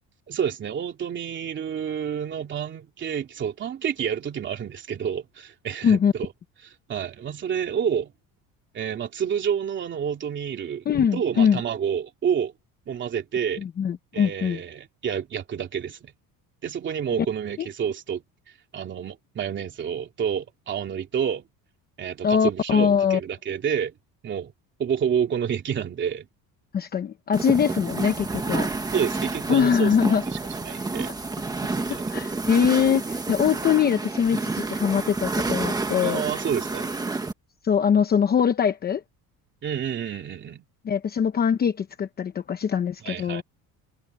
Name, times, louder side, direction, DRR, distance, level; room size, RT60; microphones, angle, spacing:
voice 1, 0.3-6.3 6.6-8.1 8.7-10.8 11.1-12.5 12.9-13.6 14.1-16.1 16.6-18.2 18.7-21.5 22.0-23.9 24.2-24.5 24.8-26.3 28.9-31.1 31.9-32.1 36.0-36.9 39.6-40.6 43.0-43.4, right 8 dB, 30° right, 3.0 m, -29 dB
voice 2, 10.9-11.6 13.6-14.6 22.2-23.2 26.7-28.7 29.5-30.2 31.9-36.2 37.6-39.0 40.8-43.4, left 7 dB, 25° left, 0.9 m, -22 dB
sound 1, 27.3-37.3, right 3 dB, 10° right, 1.4 m, -29 dB
cardioid pair, 180°, 37 cm